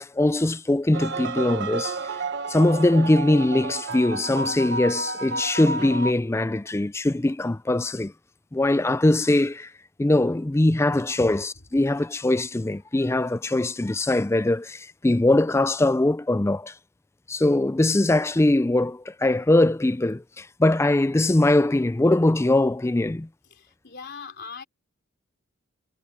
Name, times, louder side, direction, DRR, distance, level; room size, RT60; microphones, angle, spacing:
voice 1, 0.0-2.0 2.5-8.1 8.5-9.7 10.0-16.7 17.3-23.3, left 1 dB, 10° left, 0.4 m, -21 dB
sound 1, 0.9-6.1, right 3 dB, 55° right, 1.1 m, -31 dB
voice 2, 23.5-24.6, left 5 dB, 50° left, 3.5 m, -40 dB
head